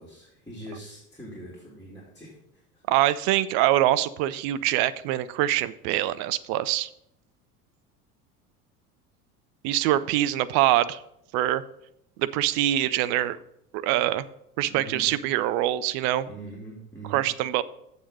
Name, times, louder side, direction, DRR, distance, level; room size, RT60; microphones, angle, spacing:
voice 1, 0.0-2.8 14.7-15.1 16.3-17.2, right 2 dB, 5° left, -6 dB, 2.7 m, -43 dB
voice 2, 2.9-6.9 9.6-11.0 11.3-11.6 12.2-13.4 13.7-14.3 14.6-16.3 17.1-17.6, right 14 dB, 40° right, 15 dB, 0.4 m, -24 dB
7.4 x 6.6 x 5.4 m, 0.78 s
figure-of-eight pair, 70°, 46 cm